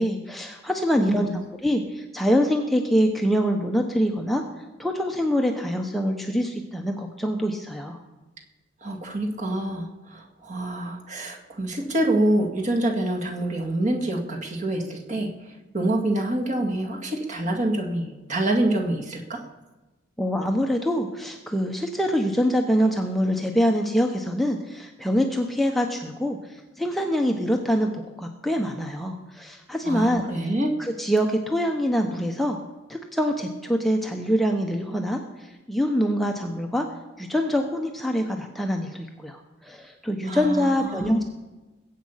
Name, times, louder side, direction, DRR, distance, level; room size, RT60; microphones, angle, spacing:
voice 1, 0.0-1.3 1.6-4.4 4.8-8.0 20.2-30.2 30.8-32.6 32.9-36.9 37.2-41.2, equal, ahead, 2 dB, 0.9 m, -25 dB
voice 2, 1.0-1.4 8.8-19.4 29.9-30.7 40.3-41.2, right 1 dB, 35° right, 1 dB, 2.0 m, -26 dB
21.0 x 8.5 x 5.7 m, 1.1 s
head